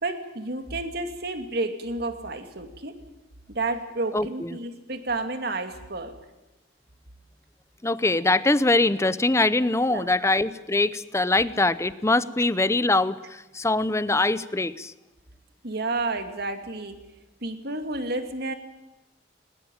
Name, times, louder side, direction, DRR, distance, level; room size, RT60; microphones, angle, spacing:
voice 1, 0.0-2.9 3.5-6.2 9.9-10.1 15.6-16.9 17.4-18.5, right 2 dB, 60° right, 8 dB, 2.4 m, -30 dB
voice 2, 4.1-4.6 7.8-14.9, left 2 dB, 15° left, 16 dB, 0.7 m, -23 dB
21.0 x 20.5 x 9.0 m, 1.0 s
head